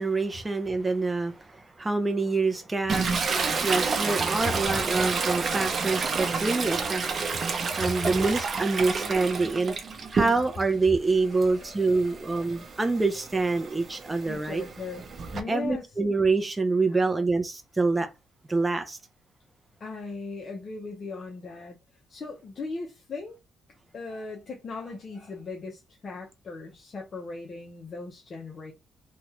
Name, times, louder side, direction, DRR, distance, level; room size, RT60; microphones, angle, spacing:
voice 1, 0.0-3.1 3.6-7.0 7.8-9.7 10.1-14.6 15.5-18.1 18.5-19.0, right 3 dB, 20° right, 0.5 m, -26 dB
Toilet flush, 2.9-10.7 11.1-15.4, right 4 dB, 45° right, 0.8 m, -30 dB
voice 2, 7.8-8.2 11.3-12.7 14.3-15.0 15.3-15.9 16.9-17.1 19.8-21.8 22.1-23.4 23.9-28.7, left 3 dB, 45° left, 0.7 m, -38 dB
3.0 x 2.3 x 3.0 m
cardioid pair, 90°, 0 cm